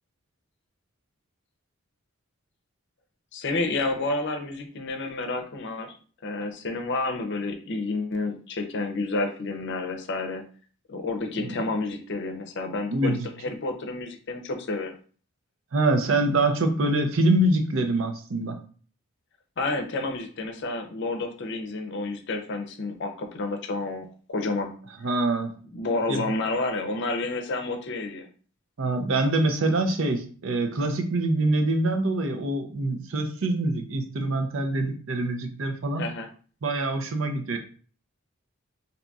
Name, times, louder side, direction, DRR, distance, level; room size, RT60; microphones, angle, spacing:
voice 1, 3.3-6.0 6.2-10.4 10.9-13.2 13.4-15.0 19.6-24.8 25.7-28.3 36.0-36.3, left 2 dB, 55° left, 5 dB, 0.6 m, -30 dB
voice 2, 12.9-13.3 15.7-18.6 25.0-25.5 26.1-26.3 28.8-36.0 36.6-37.6, right 2 dB, 65° right, 6 dB, 0.6 m, -25 dB
3.9 x 2.7 x 2.3 m, 0.42 s
head